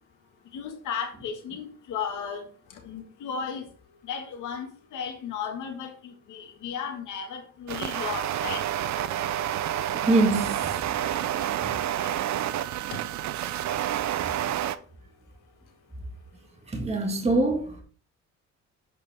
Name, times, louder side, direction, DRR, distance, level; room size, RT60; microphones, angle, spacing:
voice 1, 0.5-2.4 2.8-3.7 4.1-8.6 12.0-12.1 12.9-13.0, left 7 dB, 80° left, 1.7 m, -35 dB
sound 1, 7.7-14.8, right 11 dB, 65° right, 0.6 m, -29 dB
voice 2, 10.0-10.8 16.7-17.8, right 2 dB, 20° right, 1.6 m, -24 dB
7.9 x 5.1 x 3.4 m
cardioid pair, 90°, 30 cm